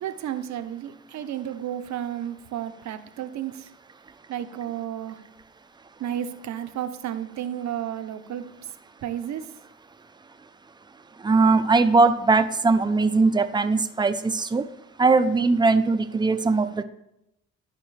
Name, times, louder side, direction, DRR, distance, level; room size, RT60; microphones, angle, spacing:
voice 1, 0.0-3.7 4.3-5.2 6.0-8.7 9.0-9.5, right 10 dB, 65° right, 10 dB, 0.7 m, -32 dB
voice 2, 11.2-14.6 15.0-16.8, right 3 dB, 15° right, 10 dB, 0.5 m, -20 dB
11.5 x 5.1 x 3.2 m, 0.85 s
cardioid pair, 90°, 30 cm